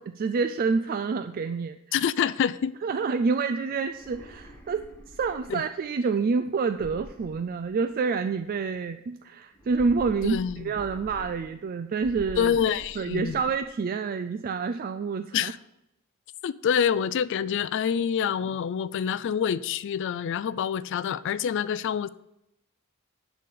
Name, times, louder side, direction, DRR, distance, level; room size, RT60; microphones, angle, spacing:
voice 1, 0.0-2.1 2.8-12.5 13.0-15.5, right 4 dB, 40° right, 0.3 m, -28 dB
voice 2, 1.9-2.7 5.5-5.6 10.2-10.7 12.4-13.4 15.3-15.6 16.4-22.1, left 8 dB, 55° left, 0.3 m, -26 dB
sound 1, 3.8-5.8 6.6-8.1 9.5-11.7 12.0-13.7, equal, 10° left, 1.3 m, -46 dB
10.5 x 4.2 x 6.5 m
head